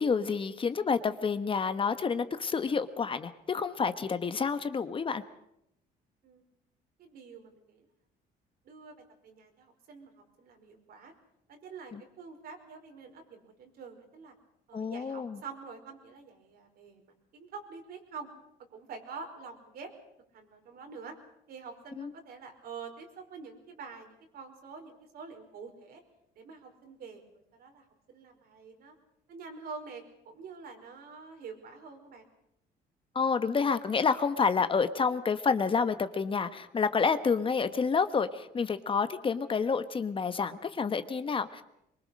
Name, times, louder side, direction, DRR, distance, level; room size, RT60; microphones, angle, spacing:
voice 1, 0.0-5.2 11.9-12.0 14.7-15.4 22.0-22.1 33.1-41.6, left 5 dB, 30° left, 11 dB, 1.2 m, -29 dB
voice 2, 7.0-7.9 8.6-8.9 9.2-11.1 11.5-14.3 14.7-18.3 18.7-19.9 20.3-21.1 21.5-26.0 26.3-28.9 29.3-32.3 41.3-41.5, right 5 dB, 65° right, 4 dB, 5.0 m, -47 dB
23.5 x 22.5 x 6.5 m, 0.80 s
cardioid pair, 110°, 17 cm